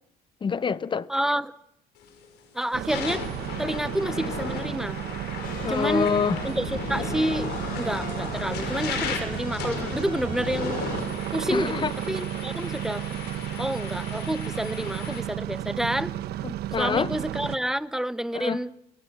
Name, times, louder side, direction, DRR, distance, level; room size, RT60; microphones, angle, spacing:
voice 1, 0.4-1.1 5.6-6.4 11.5-11.9 16.4-17.1 18.3-18.6, left 6 dB, 30° left, 0.8 m, -26 dB
voice 2, 1.1-1.5 2.5-3.2 3.6-5.0 5.7-6.1 6.4-10.9 11.3-13.0 13.6-16.1 16.8-18.7, right 1 dB, 5° right, 0.8 m, -29 dB
sound 1, 2.0-2.3 2.7-15.2, left 6 dB, 80° left, 5.3 m, -36 dB
sound 2, 2.7-17.6, right 13 dB, 70° right, 1.0 m, -33 dB
sound 3, 5.4-11.0, left 5 dB, 55° left, 6.9 m, -39 dB
26.0 x 19.0 x 7.3 m
cardioid pair, 110°, 17 cm